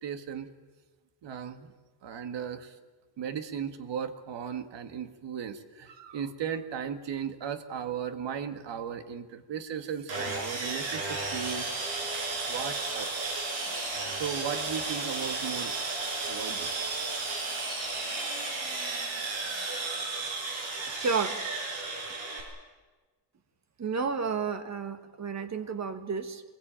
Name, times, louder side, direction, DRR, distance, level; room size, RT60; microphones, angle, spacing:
voice 1, 0.0-0.5 1.2-1.7 2.0-2.8 3.2-11.7 12.5-13.2 13.7-13.8 14.1-15.7 16.3-16.8, right 8 dB, 70° right, 9 dB, 2.0 m, -36 dB
Sawing, 10.1-22.4, right 3 dB, 85° right, 6.5 m, -33 dB
voice 2, 20.9-21.4 23.8-26.4, right 5 dB, 35° right, 10 dB, 1.7 m, -31 dB
23.5 x 21.5 x 9.0 m, 1.3 s
cardioid pair, 160°, 45 cm